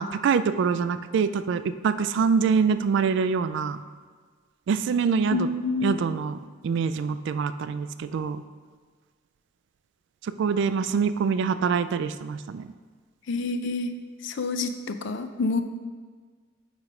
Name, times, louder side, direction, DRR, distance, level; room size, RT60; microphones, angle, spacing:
voice 1, 0.0-3.8 4.7-5.5 5.8-8.4 10.2-12.7, right 5 dB, 65° right, 12 dB, 0.3 m, -25 dB
voice 2, 5.3-6.0 13.3-13.9 14.2-15.6, left 3 dB, 65° left, 9 dB, 0.5 m, -28 dB
9.1 x 3.2 x 4.9 m, 1.5 s
head